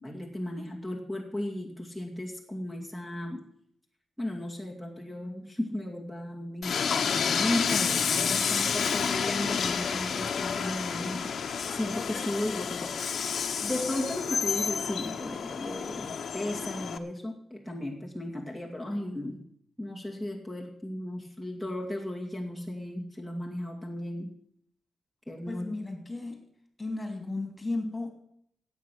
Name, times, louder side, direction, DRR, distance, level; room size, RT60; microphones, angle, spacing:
voice 1, 0.0-3.4 4.2-6.8 7.1-13.1 13.6-19.4 19.8-24.3 25.3-25.7, left 1 dB, 5° right, 0 dB, 2.4 m, -35 dB
Train, 6.6-17.0, left 6 dB, 65° left, 1.2 m, -30 dB
voice 2, 25.5-26.4 26.8-28.1, left 2 dB, 20° left, 5 dB, 2.9 m, -34 dB
16.0 x 8.4 x 6.3 m, 0.67 s
cardioid pair, 100°, 0 cm